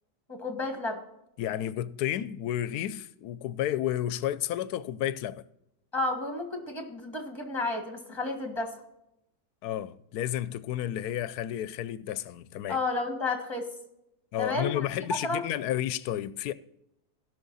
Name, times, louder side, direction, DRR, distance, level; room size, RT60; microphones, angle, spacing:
voice 1, 0.3-1.0 5.9-8.7 12.7-13.7 14.4-15.4, left 2 dB, 15° left, 1.7 m, -31 dB
voice 2, 1.4-5.4 9.6-12.8 14.3-16.5, left 12 dB, 80° left, 1.1 m, -31 dB
16.5 x 6.1 x 4.0 m
omnidirectional pair, 1.7 m